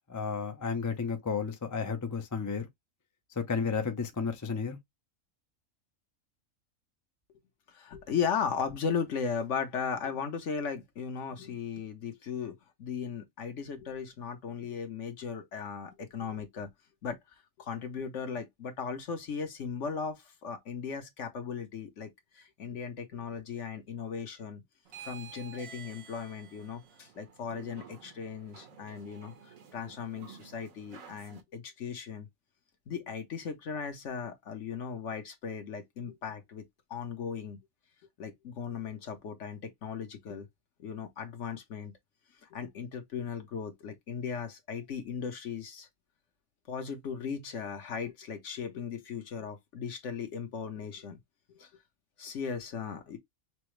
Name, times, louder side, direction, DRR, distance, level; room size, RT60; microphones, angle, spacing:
voice 1, 0.1-2.7 3.4-4.8, left 5 dB, 25° left, 0.4 m, -32 dB
voice 2, 7.7-16.7 17.0-17.2 17.6-24.6 25.0-32.3 32.9-36.6 36.9-37.6 38.2-40.5 40.8-41.9 42.4-45.9 46.7-51.2 51.5-51.7 52.2-53.2, left 6 dB, 60° left, 1.2 m, -37 dB
sound 1, 24.8-31.4, right 7 dB, 75° right, 1.4 m, -51 dB
5.9 x 2.0 x 3.1 m
omnidirectional pair, 1.5 m